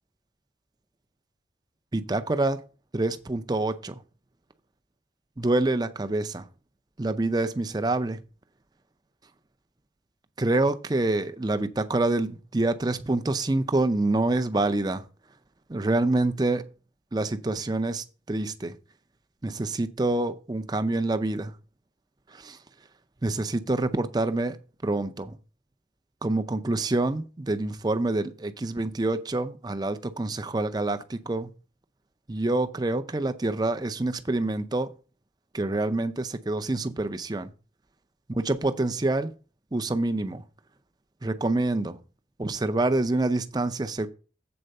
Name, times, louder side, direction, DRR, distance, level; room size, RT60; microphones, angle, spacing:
voice 1, 1.9-2.6 2.9-4.0 5.4-6.5 7.0-8.2 10.4-15.0 15.7-16.7 17.1-18.8 19.4-21.5 22.3-22.6 23.2-25.4 26.2-31.5 32.3-34.9 35.5-37.5 38.3-39.3 39.7-40.4 41.2-42.0 42.4-44.1, right 2 dB, 20° right, 0.5 m, -26 dB
7.9 x 4.4 x 6.4 m
head